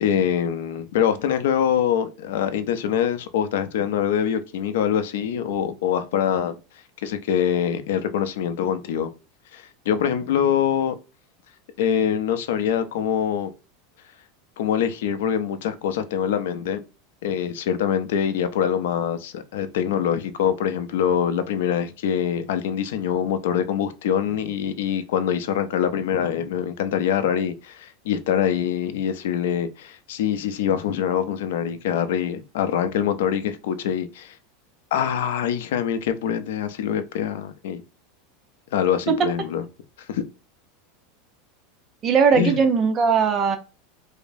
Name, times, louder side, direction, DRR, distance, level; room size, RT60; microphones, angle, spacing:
voice 1, 0.0-6.5 7.0-9.1 9.5-11.0 11.8-13.5 14.6-16.8 17.2-34.3 34.9-37.8 38.7-39.6 40.1-40.3 42.3-42.6, left 8 dB, 80° left, 0.5 m, -24 dB
voice 2, 42.0-43.6, right 6 dB, 25° right, 0.6 m, -19 dB
4.9 x 2.0 x 2.6 m
supercardioid pair, 155°, 0 cm